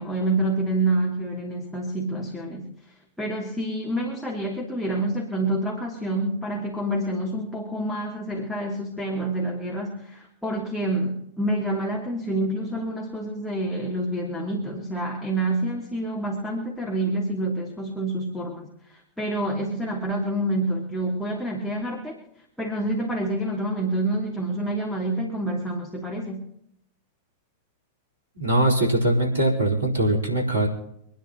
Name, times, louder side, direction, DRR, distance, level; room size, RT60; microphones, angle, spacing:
voice 1, 0.0-2.7 3.2-22.2 22.6-26.4, right 1 dB, 5° left, -3 dB, 3.0 m, -27 dB
voice 2, 28.3-30.7, right 1 dB, 75° right, -2 dB, 4.5 m, -21 dB
27.0 x 10.5 x 3.1 m, 0.75 s
figure-of-eight pair, 90°, 0 cm